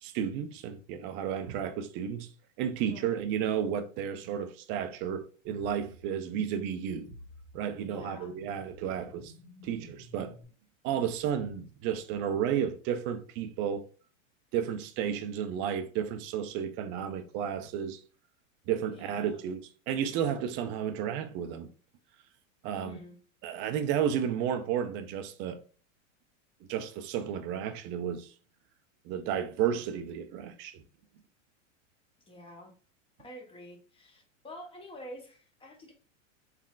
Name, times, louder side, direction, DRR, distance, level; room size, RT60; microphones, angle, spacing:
voice 1, 0.0-2.3 2.6-7.1 7.5-9.3 9.6-10.4 10.8-13.9 14.5-18.0 18.7-21.7 22.6-23.0 23.4-25.6 26.7-28.3 29.1-30.8, right 8 dB, 30° right, 0.4 m, -32 dB
voice 2, 2.7-3.2 7.9-8.3 18.9-19.4 22.7-23.2 32.3-32.7 33.2-35.9, left 1 dB, 15° left, 0.9 m, -48 dB
sound 1, 5.4-10.4, left 2 dB, 5° right, 1.4 m, -52 dB
3.5 x 3.2 x 2.3 m
hypercardioid pair, 120°, 40 cm